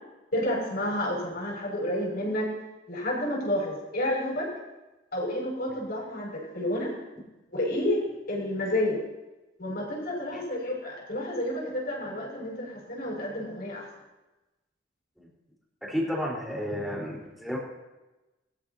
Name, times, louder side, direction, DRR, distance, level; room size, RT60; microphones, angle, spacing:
voice 1, 0.3-2.5 2.9-4.5 5.1-6.9 7.5-8.0 8.3-9.0 9.6-13.9, left 1 dB, 55° left, -2 dB, 6.2 m, -30 dB
voice 2, 15.8-17.6, equal, ahead, -4 dB, 4.2 m, -32 dB
22.5 x 13.5 x 2.9 m, 1.1 s
head